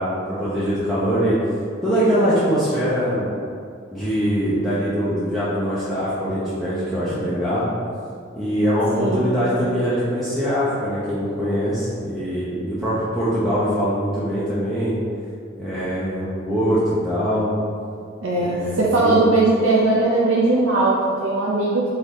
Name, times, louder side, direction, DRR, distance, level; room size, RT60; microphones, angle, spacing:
voice 1, 0.0-1.4 1.8-3.3 3.9-7.6 8.3-15.0 15.6-17.5 18.3-19.2, equal, ahead, -12 dB, 0.7 m, -22 dB
voice 2, 8.9-9.4 18.2-21.9, right 2 dB, 70° right, -5 dB, 0.5 m, -19 dB
3.9 x 3.3 x 4.0 m, 2.3 s
head